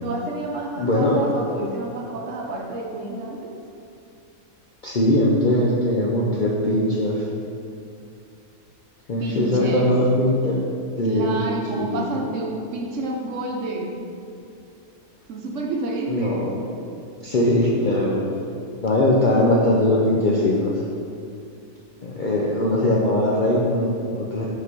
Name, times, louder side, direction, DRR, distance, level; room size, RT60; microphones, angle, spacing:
voice 1, 0.0-3.5 9.2-9.9 11.0-14.0 15.3-16.5, right 2 dB, 60° right, 0 dB, 1.0 m, -29 dB
voice 2, 0.8-1.2 4.8-7.3 9.1-10.6 11.0-11.3 11.7-12.1 16.1-16.5 17.2-18.2 18.8-20.8 22.0-24.5, left 1 dB, 55° left, -4 dB, 0.5 m, -20 dB
5.3 x 4.0 x 5.2 m, 2.5 s
omnidirectional pair, 1.5 m